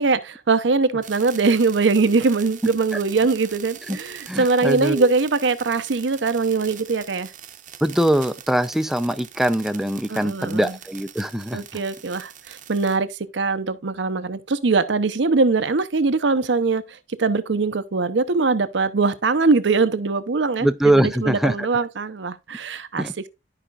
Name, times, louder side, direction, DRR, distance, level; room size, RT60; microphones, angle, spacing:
voice 1, 0.0-7.3 10.1-10.8 11.5-23.1, right 4 dB, 90° right, 0.7 m, -22 dB
sound 1, 1.0-13.0, right 9 dB, 45° right, 0.8 m, -42 dB
voice 2, 4.3-5.1 7.8-11.7 20.6-21.7 23.0-23.3, right 1 dB, ahead, 0.5 m, -22 dB
12.5 x 5.0 x 2.4 m
head